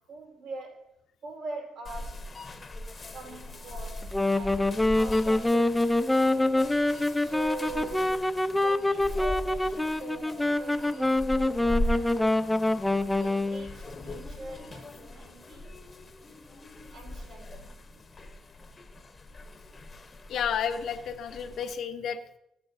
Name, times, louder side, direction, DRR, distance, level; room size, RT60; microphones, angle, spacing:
voice 1, 0.1-0.9 1.2-2.7 3.1-6.8 7.2-12.7 13.2-15.7 16.9-17.8, right 3 dB, 85° right, 4.2 m, -43 dB
sound 1, 1.8-21.7, left 1 dB, 35° left, 0.8 m, -40 dB
Wind instrument woodwind instrument, 4.0-13.7, left 2 dB, 10° left, 0.5 m, -25 dB
voice 2, 20.3-22.4, left 7 dB, 70° left, 0.9 m, -31 dB
14.5 x 9.0 x 2.6 m
cardioid pair, 90°, 0 cm